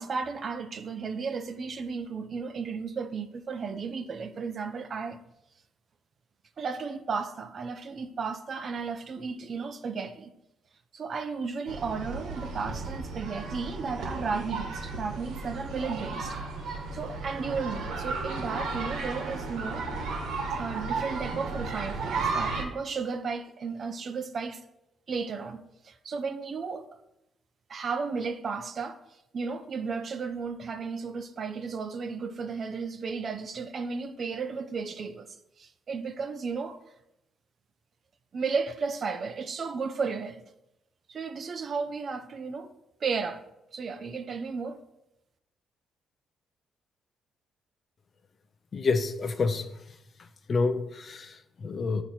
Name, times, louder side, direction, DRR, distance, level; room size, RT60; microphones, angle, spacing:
voice 1, 0.0-5.2 6.6-10.3 10.9-16.4 16.7-19.8 20.5-24.6 25.1-26.9 27.7-29.0 29.3-35.3 35.6-36.8 38.3-40.4 41.1-42.7 43.0-43.4 43.7-44.8, right 5 dB, 50° right, 0.5 m, -34 dB
sound 1, 11.7-22.6, right 3 dB, 85° right, 1.1 m, -34 dB
voice 2, 48.7-49.7 50.5-52.0, left 4 dB, 45° left, 0.5 m, -28 dB
8.9 x 3.0 x 4.2 m
cardioid pair, 90°, 0 cm